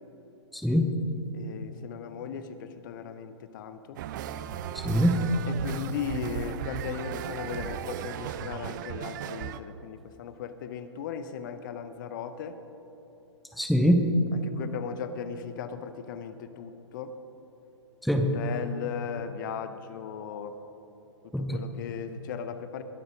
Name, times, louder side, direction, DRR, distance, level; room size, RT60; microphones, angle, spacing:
voice 1, 0.5-1.0 4.7-5.2 13.6-14.1 18.0-18.4 21.3-21.6, equal, ahead, 4 dB, 0.8 m, -23 dB
voice 2, 1.3-4.0 5.4-12.6 14.3-17.1 18.1-20.6 21.2-22.8, left 7 dB, 40° left, 10 dB, 0.8 m, -37 dB
sound 1, 3.9-9.6, right 9 dB, 40° right, 0.5 m, -36 dB
21.0 x 8.0 x 5.1 m, 3.0 s
figure-of-eight pair, 115°, 15 cm